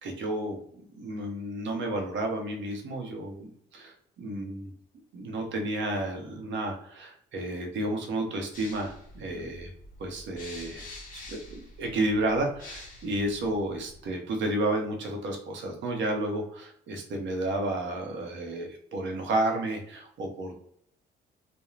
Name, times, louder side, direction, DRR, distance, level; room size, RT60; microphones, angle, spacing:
voice 1, 0.0-3.3 3.7-4.7 5.1-9.7 10.0-10.9 11.1-20.6, right 1 dB, 70° right, 2 dB, 0.8 m, -31 dB
sound 1, 8.5-14.1, left 2 dB, 45° left, 0.9 m, -47 dB
2.4 x 2.1 x 3.0 m, 0.67 s
cardioid pair, 90°, 20 cm